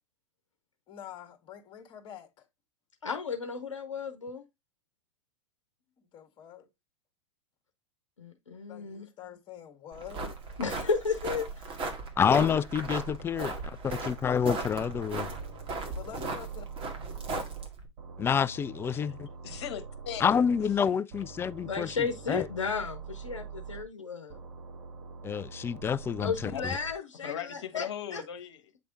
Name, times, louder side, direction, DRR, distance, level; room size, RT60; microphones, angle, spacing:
voice 1, 0.9-2.3 6.0-6.7 8.7-10.3 15.8-16.6, left 10 dB, 30° left, 1.8 m, -46 dB
voice 2, 3.0-4.4 8.2-9.1 10.6-11.7 21.6-24.4 26.2-28.2, left 5 dB, 85° left, 0.9 m, -34 dB
sound 1, 9.9-17.9, right 3 dB, 35° right, 1.9 m, -37 dB
voice 3, 12.2-13.5 13.8-15.3 18.2-19.3 20.2-22.5 25.2-26.8, left 7 dB, 15° left, 0.3 m, -28 dB
sound 2, 14.8-17.7 18.0-20.8 21.1-23.8 24.3-26.9, right 5 dB, 50° right, 1.8 m, -44 dB
voice 4, 19.4-20.2 26.5-26.7 27.2-28.6, left 9 dB, 60° left, 1.2 m, -38 dB
8.4 x 3.4 x 3.8 m
figure-of-eight pair, 100°, 15 cm